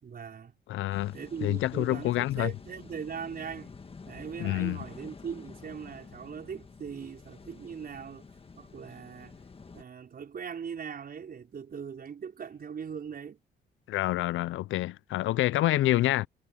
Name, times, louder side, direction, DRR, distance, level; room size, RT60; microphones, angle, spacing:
voice 1, 0.0-0.5 1.1-3.7 4.1-8.2 8.6-9.3 9.7-13.4, right 7 dB, 50° right, 4.8 m, -40 dB
voice 2, 0.7-2.5 4.4-4.8 13.9-16.3, left 15 dB, 80° left, 0.5 m, -27 dB
sound 1, 0.9-9.8, left 4 dB, 30° left, 1.7 m, -49 dB
cardioid pair, 90°, 20 cm